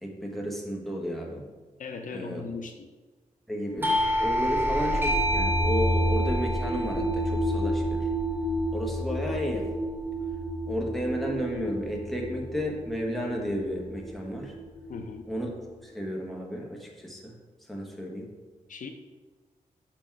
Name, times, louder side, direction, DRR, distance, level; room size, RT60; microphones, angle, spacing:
voice 1, 0.0-1.4 2.1-2.4 3.5-8.1 8.7-9.7 10.7-14.5 15.3-15.5 15.8-17.3 17.7-18.3, equal, ahead, -1 dB, 1.4 m, -33 dB
voice 2, 1.8-2.9 14.9-15.2 18.7-18.9, left 4 dB, 65° left, 6 dB, 0.6 m, -38 dB
sound 1, 3.8-15.6, equal, 45° left, 1.0 m, -31 dB
Doorbell, 3.8-9.1, equal, 15° right, 1.1 m, -29 dB
6.1 x 5.9 x 4.7 m, 1.3 s
wide cardioid pair, 115°, 14 cm